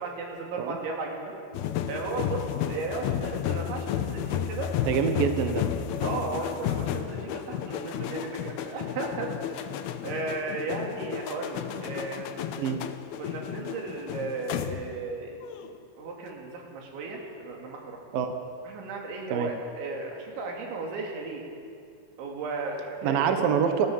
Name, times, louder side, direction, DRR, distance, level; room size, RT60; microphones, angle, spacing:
voice 1, 0.0-1.3 1.9-4.7 6.0-12.5 13.2-15.4 16.0-18.0 18.6-21.5 22.2-23.6, right 3 dB, 80° right, 0 dB, 5.1 m, -35 dB
sound 1, 1.5-15.1 15.4-15.7, left 10 dB, 75° left, 2.4 m, -32 dB
voice 2, 4.8-5.7 12.6-12.8 18.1-18.4 19.3-19.5 23.0-23.9, right 7 dB, 65° right, 6 dB, 2.6 m, -25 dB
29.0 x 14.0 x 7.4 m, 2.4 s
omnidirectional pair, 5.2 m